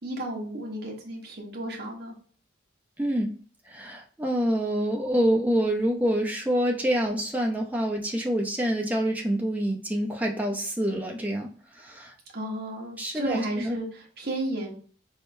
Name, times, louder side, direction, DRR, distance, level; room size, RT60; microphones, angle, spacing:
voice 1, 0.0-2.1 12.3-14.7, right 1 dB, 55° right, -2 dB, 1.2 m, -33 dB
voice 2, 3.0-3.3 3.7-11.5 11.7-12.1 13.0-13.8, equal, 10° right, 0 dB, 0.6 m, -26 dB
4.3 x 3.5 x 2.6 m, 0.44 s
head